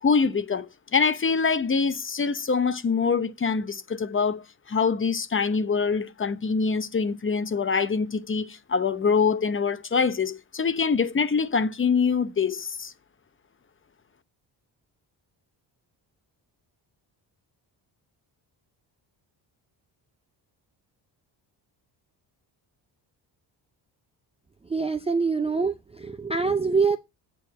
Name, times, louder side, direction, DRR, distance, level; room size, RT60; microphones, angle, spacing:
voice 1, 0.0-12.9, left 5 dB, 30° left, 0.7 m, -24 dB
voice 2, 24.7-27.0, right 4 dB, 15° right, 0.4 m, -25 dB
8.5 x 4.5 x 7.4 m
cardioid pair, 145°, 45 cm